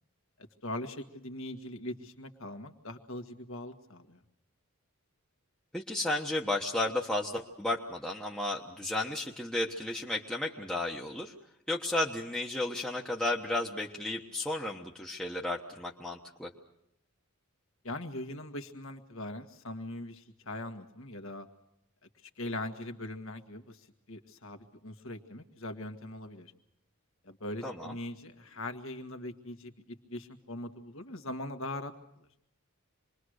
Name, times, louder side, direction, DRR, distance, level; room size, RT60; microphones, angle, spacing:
voice 1, 0.6-4.2 17.8-21.5 22.2-26.5 27.2-31.9 32.2-32.3, left 1 dB, 60° left, 6 dB, 1.8 m, -41 dB
voice 2, 5.7-11.3 11.7-16.5 27.6-28.0, left 2 dB, 5° left, -3 dB, 1.3 m, -33 dB
26.5 x 22.0 x 6.5 m, 0.78 s
head